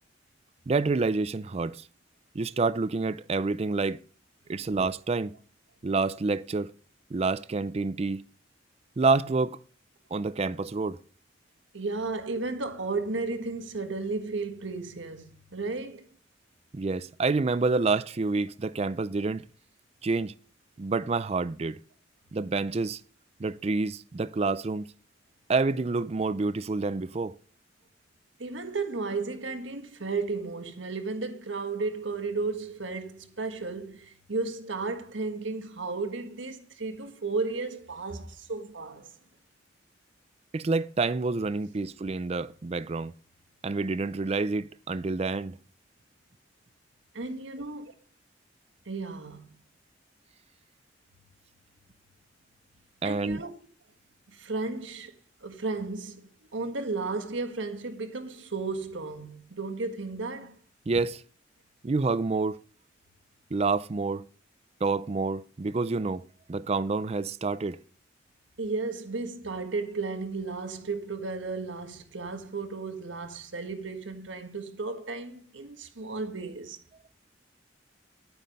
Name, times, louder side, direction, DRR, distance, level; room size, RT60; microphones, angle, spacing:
voice 1, 0.7-1.8 2.3-4.0 4.5-5.3 5.8-6.7 7.1-8.2 9.0-9.6 10.1-11.0 16.7-19.4 20.0-20.3 20.8-21.8 22.3-23.0 23.4-24.8 25.5-27.3 40.5-43.1 43.6-45.5 53.0-53.4 60.9-61.2 61.8-62.6 63.5-64.2 64.8-66.2 66.5-67.8, right 3 dB, 35° right, 0.4 m, -28 dB
voice 2, 11.7-16.0 28.4-39.1 47.1-47.9 48.8-49.4 53.0-53.6 54.3-60.6 68.6-76.8, right 3 dB, 85° right, 1.6 m, -34 dB
10.5 x 9.2 x 5.3 m
head